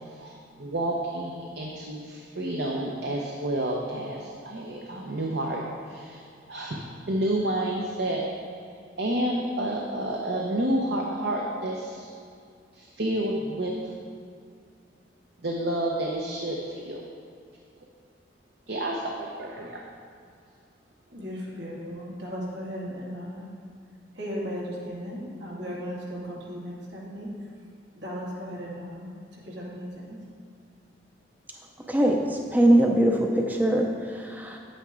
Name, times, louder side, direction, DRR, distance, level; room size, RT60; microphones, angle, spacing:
voice 1, 0.1-8.3 9.0-12.1 12.7-13.8 15.4-17.0 18.7-19.8, right 1 dB, 65° right, -2 dB, 0.9 m, -30 dB
voice 2, 21.1-23.5 24.1-27.3 27.9-30.2, equal, 80° right, -5 dB, 2.4 m, -36 dB
voice 3, 32.5-33.9 34.2-34.6, right 1 dB, 10° right, 1 dB, 0.6 m, -21 dB
9.4 x 8.9 x 3.8 m, 2.2 s
head